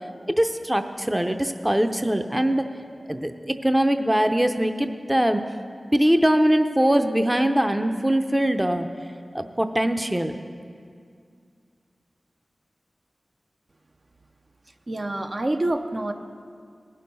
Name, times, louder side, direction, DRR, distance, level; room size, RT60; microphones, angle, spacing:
voice 1, 0.4-2.6 3.1-5.4 5.9-8.9 9.3-10.3, right 1 dB, 15° right, 7 dB, 0.6 m, -22 dB
voice 2, 14.9-16.1, right 1 dB, 50° right, 5 dB, 0.7 m, -26 dB
19.0 x 6.5 x 5.4 m, 2.3 s
cardioid pair, 50°, 0 cm